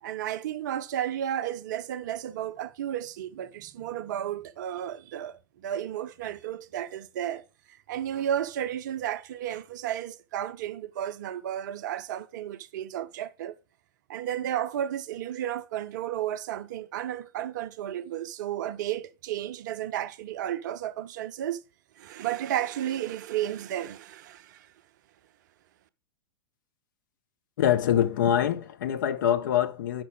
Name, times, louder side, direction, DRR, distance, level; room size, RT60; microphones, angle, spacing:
voice 1, 0.0-13.6 14.1-21.6 22.0-24.7, right 11 dB, 45° right, 0.5 m, -33 dB
voice 2, 27.6-30.0, left 10 dB, 50° left, 0.7 m, -24 dB
5.9 x 5.6 x 4.8 m
figure-of-eight pair, 100°, 13 cm